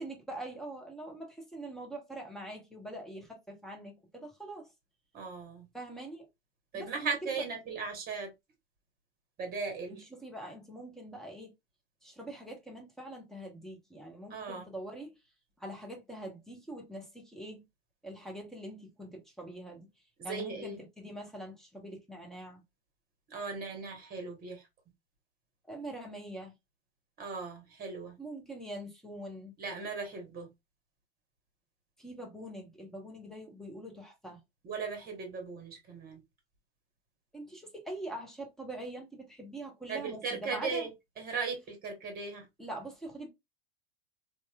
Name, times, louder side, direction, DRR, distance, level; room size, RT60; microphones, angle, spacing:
voice 1, 0.0-4.7 5.7-6.3 6.7-7.4 9.9-11.5 12.0-15.1 15.6-17.6 18.0-19.9 20.2-22.6 25.7-26.5 28.2-29.5 32.0-34.4 37.3-40.9 42.6-43.3, right 1 dB, ahead, 1.0 m, -43 dB
voice 2, 5.1-5.7 6.7-8.3 9.4-10.0 14.3-14.7 20.2-20.8 23.3-24.6 27.2-28.1 29.6-30.5 34.6-36.2 39.9-40.9 41.2-42.4, right 4 dB, 30° right, 1.2 m, -37 dB
2.8 x 2.3 x 2.3 m
hypercardioid pair, 95°, 32 cm